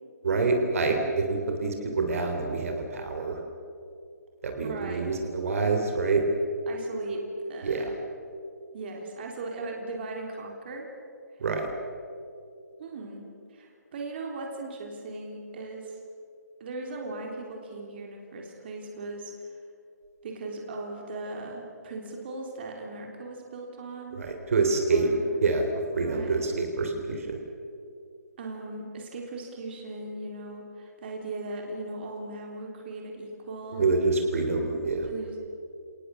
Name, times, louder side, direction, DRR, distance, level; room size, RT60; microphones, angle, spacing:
voice 1, 0.2-3.4 4.4-6.3 7.6-7.9 11.4-11.7 24.2-25.1 25.4-25.6 25.9-27.4 33.8-35.1, right 3 dB, 50° right, 4 dB, 3.5 m, -26 dB
voice 2, 4.6-5.2 6.7-7.2 7.5-8.0 8.7-10.9 12.8-16.0 16.6-19.3 20.2-24.2 24.8-25.4 26.0-26.4 28.4-33.9 35.0-35.4, right 2 dB, 35° right, 1 dB, 3.6 m, -38 dB
29.5 x 19.0 x 7.2 m, 2.5 s
hypercardioid pair, 165°, 10 cm